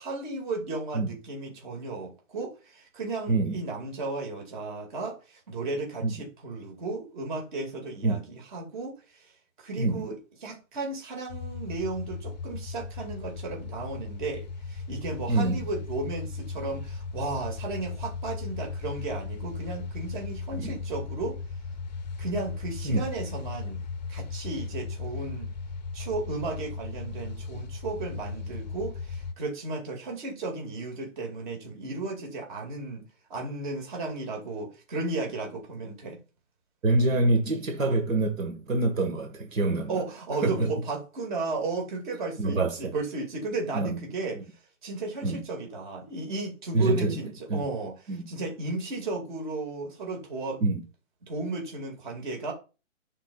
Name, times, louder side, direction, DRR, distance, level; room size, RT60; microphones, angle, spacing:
voice 1, 0.0-8.9 9.6-21.4 22.2-23.8 24.1-25.5 25.9-33.0 33.3-36.2 39.9-44.4 44.8-50.6 51.3-52.5, right 3 dB, 35° right, 2.3 m, -34 dB
voice 2, 3.3-3.6 6.0-6.1 8.0-8.2 9.8-10.1 15.3-15.6 20.6-20.7 22.8-23.0 36.8-40.0 40.4-40.7 42.4-42.9 43.7-44.0 45.2-45.4 46.7-47.2 47.5-47.6 48.1-48.3 50.6-50.8, right 2 dB, 80° right, 1.7 m, -25 dB
sound 1, 11.3-29.3, left 4 dB, 35° left, 0.6 m, -37 dB
10.0 x 4.1 x 2.4 m
hypercardioid pair, 160°, 39 cm